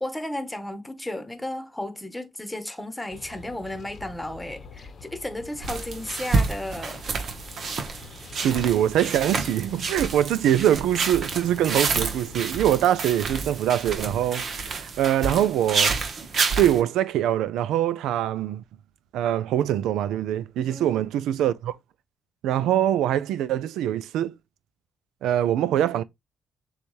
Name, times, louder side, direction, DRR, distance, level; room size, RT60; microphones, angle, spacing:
voice 1, 0.0-7.0 20.7-21.0, left 1 dB, 10° left, 1.1 m, -34 dB
sound 1, 3.1-12.5, left 4 dB, 55° left, 0.8 m, -45 dB
sound 2, 5.6-16.8, right 4 dB, 55° right, 1.0 m, -29 dB
voice 2, 8.4-16.0 16.6-18.6 19.1-21.8 22.4-24.4 25.2-26.0, right 11 dB, 90° right, 0.3 m, -23 dB
6.8 x 2.3 x 3.1 m
cardioid pair, 80°, 0 cm